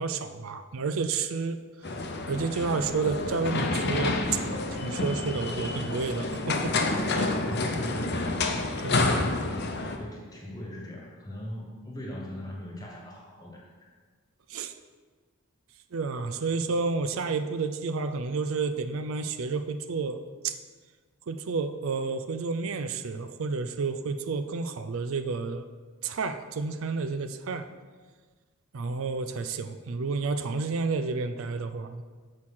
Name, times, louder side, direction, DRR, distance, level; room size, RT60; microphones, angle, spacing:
voice 1, 0.0-1.6 2.3-4.2 4.8-6.7 7.1-7.4 8.8-9.1 14.5-14.7 15.9-20.2 20.4-20.5 21.3-25.7 26.0-27.7 28.7-32.0, right 4 dB, 70° right, 9 dB, 0.5 m, -30 dB
sound 1, 1.8-10.0, left 2 dB, 50° left, 0.7 m, -29 dB
voice 2, 7.4-8.4 9.2-13.9, left 1 dB, 15° left, -1 dB, 1.4 m, -40 dB
6.5 x 6.2 x 5.6 m, 1.5 s
head